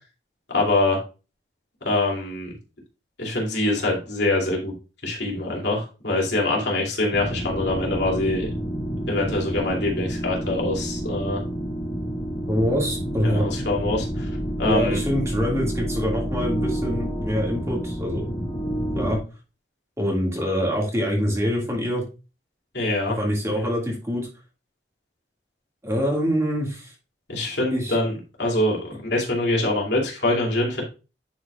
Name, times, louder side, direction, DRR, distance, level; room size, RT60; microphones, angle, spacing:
voice 1, 0.5-1.0 1.8-2.5 3.2-4.7 5.0-8.5 9.1-11.4 13.2-14.3 14.6-15.0 22.7-23.2 23.4-23.6 27.3-28.8 29.1-30.8, left 2 dB, 70° left, -2 dB, 2.6 m, -24 dB
sound 1, 7.1-19.2, equal, 25° left, 2.4 m, -29 dB
voice 2, 12.5-13.5 14.6-18.2 18.9-19.2 20.0-22.1 23.2-24.3 25.8-26.9 27.7-28.0, equal, 15° right, -2 dB, 1.9 m, -25 dB
10.0 x 4.9 x 2.3 m, 0.32 s
head